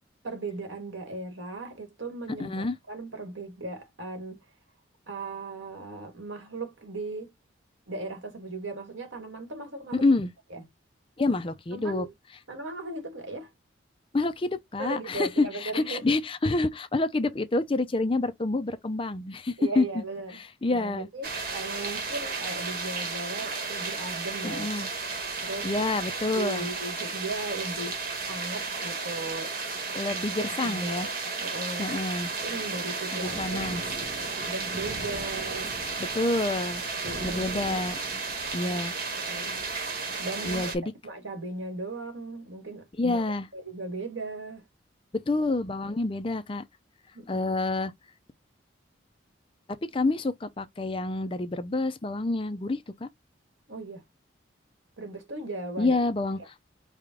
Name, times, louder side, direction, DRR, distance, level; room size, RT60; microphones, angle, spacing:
voice 1, 0.2-4.4 5.1-7.3 7.9-10.1 10.5-10.7 11.7-12.1 12.5-13.5 14.8-16.2 19.6-20.4 20.7-24.7 25.4-25.7 26.3-28.0 28.3-29.5 30.1-30.2 30.6-31.9 32.4-33.6 34.4-35.8 37.0-37.6 38.6-38.8 39.3-39.6 40.2-40.7 41.0-43.2 43.5-44.6 47.1-47.5 53.7-54.0 55.0-56.0, right 2 dB, 85° right, 1.6 m, -37 dB
voice 2, 2.4-2.8 9.9-10.3 11.2-12.1 14.1-20.0 20.3-21.5 24.4-24.9 25.6-26.7 29.9-31.1 31.8-32.3 33.1-33.8 36.0-36.8 37.2-38.1 38.5-38.9 40.4-40.9 43.0-43.5 45.3-46.6 47.3-47.9 49.9-53.1 55.8-56.5, left 2 dB, 25° left, 0.5 m, -28 dB
sound 1, 21.2-40.7, right 4 dB, 50° right, 1.2 m, -33 dB
4.9 x 2.3 x 3.6 m
head